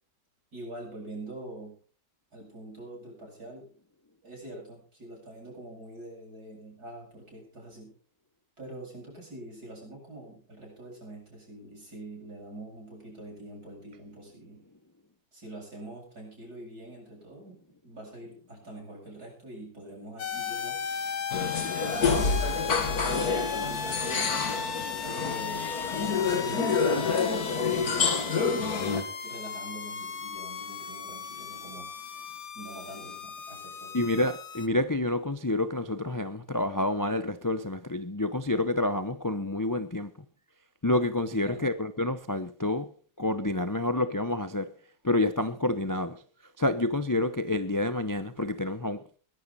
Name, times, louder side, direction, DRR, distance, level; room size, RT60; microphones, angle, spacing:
voice 1, 0.5-1.8 2.3-3.7 4.2-7.9 8.6-14.6 15.3-17.6 17.8-20.8 21.4-24.5 25.0-28.1 28.9-31.9 32.5-33.9 41.3-41.7, right 1 dB, 65° right, 8.4 m, -45 dB
sound 1, 20.2-34.7, left 6 dB, 45° left, 1.4 m, -36 dB
sound 2, 21.3-29.0, left 5 dB, 60° left, 2.4 m, -28 dB
voice 2, 33.9-40.1 40.8-42.9 43.2-44.7 45.0-46.2 46.6-49.0, left 2 dB, 30° left, 0.3 m, -28 dB
21.5 x 11.5 x 4.2 m
omnidirectional pair, 1.8 m